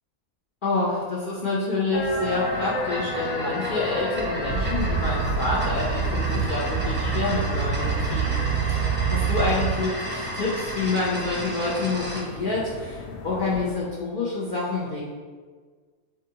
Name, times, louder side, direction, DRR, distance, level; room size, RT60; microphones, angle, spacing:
voice 1, 0.6-15.0, left 3 dB, 50° left, -7 dB, 0.6 m, -28 dB
sound 1, 1.9-13.7, left 2 dB, 90° left, 1.1 m, -34 dB
sound 2, 2.1-12.3, right 1 dB, 10° right, 0.6 m, -34 dB
sound 3, 4.5-9.7, right 6 dB, 65° right, 0.8 m, -26 dB
7.2 x 2.6 x 2.8 m, 1.6 s
omnidirectional pair, 1.5 m